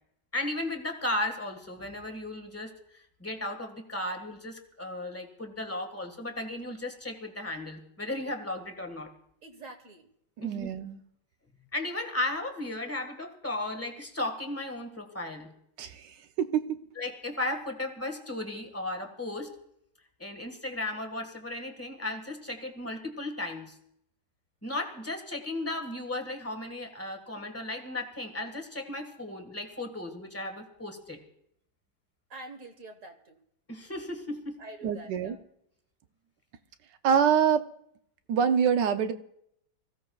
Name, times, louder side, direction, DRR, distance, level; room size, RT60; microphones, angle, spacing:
voice 1, 0.3-9.1 10.4-10.7 11.7-15.5 16.9-19.5 20.2-23.8 24.6-31.2 33.7-34.6, left 1 dB, 10° left, 4 dB, 1.5 m, -35 dB
voice 2, 9.4-10.1 32.3-33.4 34.6-35.4, right 2 dB, 50° right, 4 dB, 1.5 m, -46 dB
voice 3, 10.4-11.0 15.8-16.0 16.4-16.8 34.8-35.4 37.0-37.7 38.3-39.1, right 7 dB, 85° right, 8 dB, 1.4 m, -25 dB
26.0 x 15.5 x 2.3 m, 0.74 s
omnidirectional pair, 1.8 m